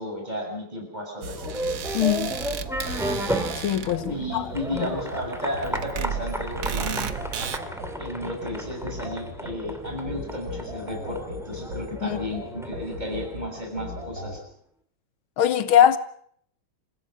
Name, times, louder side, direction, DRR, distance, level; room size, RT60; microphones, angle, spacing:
voice 1, 0.0-1.3 4.1-7.1 8.0-14.4, left 1 dB, 20° right, 6.7 m, -33 dB
sound 1, 1.2-7.6, right 7 dB, 50° right, 1.2 m, -34 dB
sound 2, 1.2-14.4, left 1 dB, 75° right, 7.5 m, -37 dB
sound 3, 1.3-14.1, right 1 dB, ahead, 2.2 m, -34 dB
voice 2, 1.9-2.4 3.6-4.5 4.7-4.9 12.0-12.2 15.4-16.0, left 10 dB, 85° left, 1.9 m, -21 dB
28.5 x 16.0 x 6.4 m
omnidirectional pair, 2.2 m